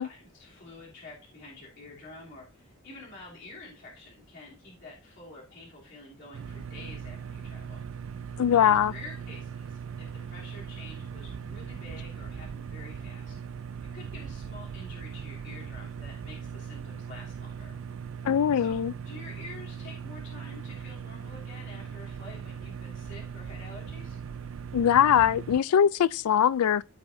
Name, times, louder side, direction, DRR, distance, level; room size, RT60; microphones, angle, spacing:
voice 1, 0.0-7.8 8.5-13.3 13.8-17.8 18.5-18.7 19.0-24.2, left 2 dB, 55° left, 3.2 m, -48 dB
sound 1, 6.3-25.6, right 7 dB, 65° right, 0.4 m, -39 dB
voice 2, 8.4-8.9 18.2-18.9 24.7-26.8, left 9 dB, 85° left, 0.3 m, -22 dB
15.5 x 5.6 x 2.7 m
head